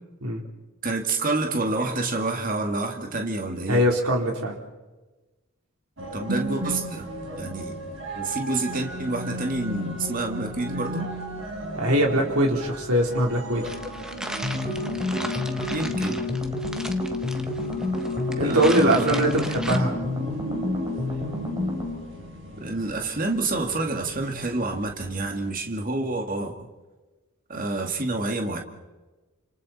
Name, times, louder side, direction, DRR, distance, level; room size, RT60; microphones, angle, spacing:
voice 1, 0.8-3.8 6.1-7.1 7.4-7.8 8.2-11.1 15.7-16.2 18.4-19.2 19.6-19.8 22.6-26.6 27.5-28.6, right 2 dB, 40° right, 3 dB, 2.2 m, -28 dB
voice 2, 3.7-4.6 11.7-13.6 18.4-19.9, right 1 dB, 85° right, 0 dB, 4.0 m, -22 dB
sound 1, 6.0-25.5, right 1 dB, 60° right, 4.6 m, -36 dB
sound 2, 13.6-19.8, equal, 5° right, 1.2 m, -37 dB
sound 3, 14.4-22.1, left 2 dB, 20° right, 3.8 m, -29 dB
29.0 x 27.5 x 4.4 m, 1.2 s
head